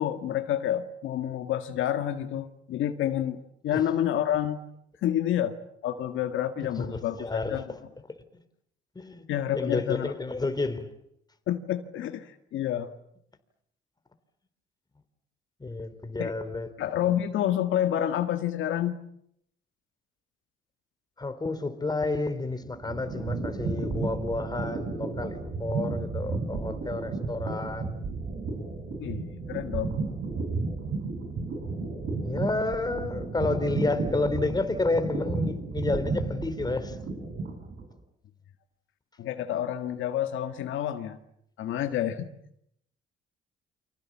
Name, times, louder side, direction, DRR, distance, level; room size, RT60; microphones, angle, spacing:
voice 1, 0.0-4.7 5.0-5.6 5.8-7.6 9.3-10.1 11.5-12.9 16.2-16.3 16.8-19.0 29.0-29.9 39.2-41.2 41.6-42.3, left 11 dB, 80° left, 1.8 m, -29 dB
voice 2, 6.8-7.8 8.1-8.2 8.9-9.2 9.5-10.9 15.6-16.7 21.2-28.0 32.2-37.0, left 2 dB, 20° left, 3.4 m, -30 dB
sound 1, 22.5-37.9, right 3 dB, 60° right, 7.9 m, -33 dB
29.5 x 24.5 x 7.4 m
cardioid pair, 90°, 20 cm